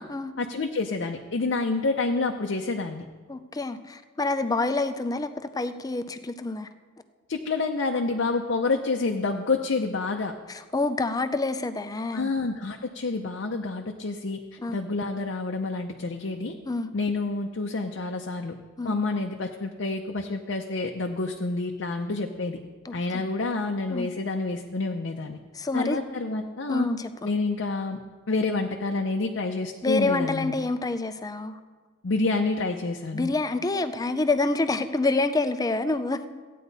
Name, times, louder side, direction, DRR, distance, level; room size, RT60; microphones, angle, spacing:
voice 1, 0.4-3.0 7.3-10.3 12.1-14.4 14.7-16.5 16.9-18.5 18.8-22.6 22.9-25.4 25.7-26.9 27.2-28.0 28.3-30.6 32.0-33.3, left 3 dB, 70° left, 3 dB, 0.6 m, -28 dB
voice 2, 3.3-6.7 10.5-12.3 14.6-14.8 16.7-16.9 18.8-19.0 22.8-23.3 23.9-24.1 25.5-26.1 26.7-27.3 29.8-31.6 33.1-36.2, left 2 dB, 20° left, 10 dB, 0.5 m, -27 dB
15.0 x 9.3 x 4.0 m, 1.4 s
head